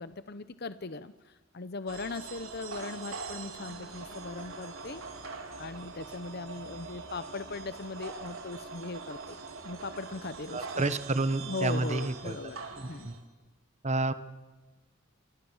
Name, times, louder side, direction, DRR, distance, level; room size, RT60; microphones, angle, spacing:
voice 1, 0.0-5.0 5.6-9.4 9.6-10.9 11.4-12.6 12.9-13.1, left 3 dB, 50° left, 12 dB, 0.8 m, -39 dB
sound 1, 1.9-13.2, right 4 dB, 85° right, 3.8 m, -43 dB
voice 2, 10.5-12.3 12.8-13.1 13.8-14.1, right 2 dB, 35° right, 12 dB, 1.3 m, -30 dB
25.5 x 25.5 x 7.3 m, 1.2 s
head